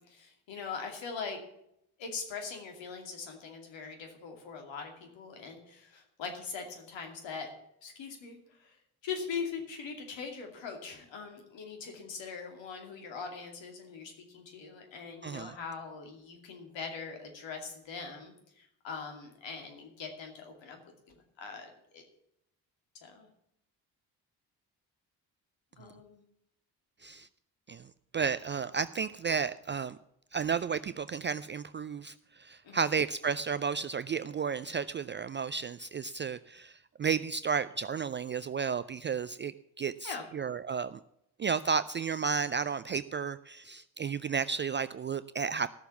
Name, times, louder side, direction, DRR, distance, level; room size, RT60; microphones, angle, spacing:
voice 1, 0.0-1.4 2.0-7.5 7.8-8.8 9.0-20.8 21.1-22.0 23.0-23.3 25.8-26.2 32.6-32.9 40.0-40.2, left 5 dB, 60° left, 4 dB, 2.7 m, -42 dB
voice 2, 15.2-15.5 27.0-27.3 27.7-30.0 30.3-41.0 41.4-45.7, right 6 dB, 25° right, 14 dB, 0.4 m, -33 dB
14.5 x 6.9 x 7.1 m, 0.78 s
hypercardioid pair, 45°, 50 cm